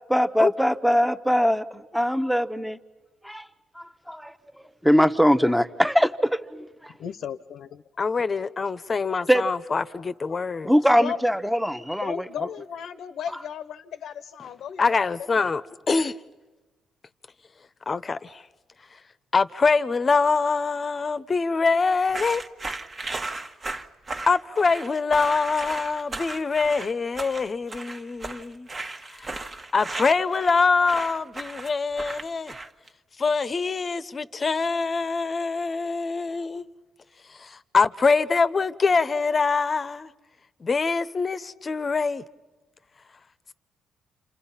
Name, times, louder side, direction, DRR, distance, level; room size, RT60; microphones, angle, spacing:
voice 1, 0.1-2.8 3.2-3.5 4.1-4.3 4.8-6.9 9.3-9.4 10.6-12.2, equal, ahead, 0.9 m, -22 dB
voice 2, 7.0-7.8 10.0-10.4 11.0-11.2 12.0-15.1, left 8 dB, 70° left, 0.7 m, -35 dB
voice 3, 8.0-10.7 14.8-16.1 17.9-18.4 19.3-22.4 24.3-28.7 29.2-29.3 29.7-32.5 33.2-36.7 37.4-40.1 40.6-42.2, left 4 dB, 35° left, 0.8 m, -24 dB
sound 1, 22.1-32.9, right 2 dB, 30° right, 1.3 m, -35 dB
29.5 x 27.5 x 5.7 m
cardioid pair, 90°, 0 cm